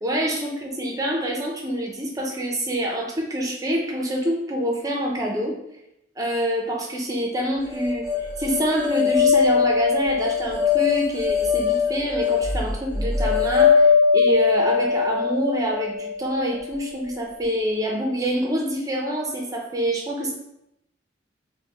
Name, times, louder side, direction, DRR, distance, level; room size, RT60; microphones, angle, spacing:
voice 1, 0.0-5.5 6.2-20.3, equal, 20° right, 0 dB, 0.5 m, -26 dB
sound 1, 7.7-16.9, left 6 dB, 15° left, 1.0 m, -21 dB
2.9 x 2.1 x 3.5 m, 0.83 s
head